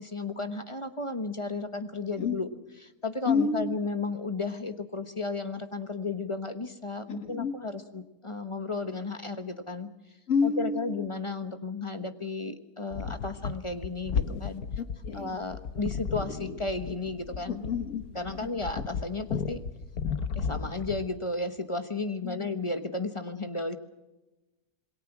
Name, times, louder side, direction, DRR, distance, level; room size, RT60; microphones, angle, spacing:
voice 1, 0.0-2.5 2.8-9.9 10.4-14.6 15.1-17.7 18.1-19.6 20.3-23.8, left 3 dB, 20° left, 9 dB, 1.1 m, -34 dB
voice 2, 3.3-3.8 7.1-7.5 10.3-11.1 14.8-15.4 17.5-18.0 18.3-18.5 22.2-22.5, left 5 dB, 55° left, 8 dB, 1.9 m, -29 dB
sound 1, 12.9-21.2, left 6 dB, 90° left, 1.6 m, -34 dB
27.5 x 21.0 x 6.1 m, 1.1 s
omnidirectional pair, 1.6 m